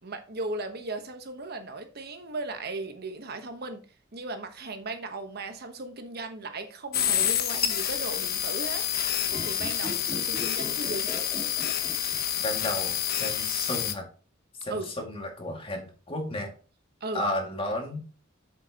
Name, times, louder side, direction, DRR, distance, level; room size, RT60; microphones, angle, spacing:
voice 1, 0.0-3.8 4.1-11.1 14.7-14.9 17.0-17.3, right 2 dB, 55° right, 1.1 m, -37 dB
sound 1, 6.9-13.9, left 10 dB, 50° left, 0.9 m, -28 dB
sound 2, 9.2-12.6 12.9-13.0, equal, 5° left, 1.8 m, -40 dB
voice 2, 12.4-14.1 14.6-16.5 17.1-18.0, left 1 dB, 30° left, 2.1 m, -33 dB
8.1 x 7.7 x 2.9 m
head